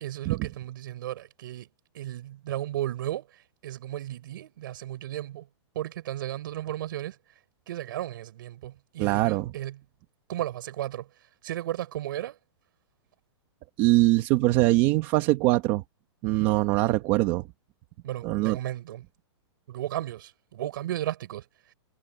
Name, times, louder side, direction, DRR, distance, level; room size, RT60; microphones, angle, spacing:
voice 1, 0.0-1.7 1.9-5.5 5.7-7.2 7.7-9.8 10.3-11.1 11.4-12.4 18.0-19.0 19.7-21.4, right 13 dB, 45° right, 5.0 m, -34 dB
voice 2, 9.0-9.5 13.8-15.8 16.2-17.5 18.2-18.6, right 19 dB, 25° right, 1.2 m, -22 dB
hypercardioid pair, 175°, 15 cm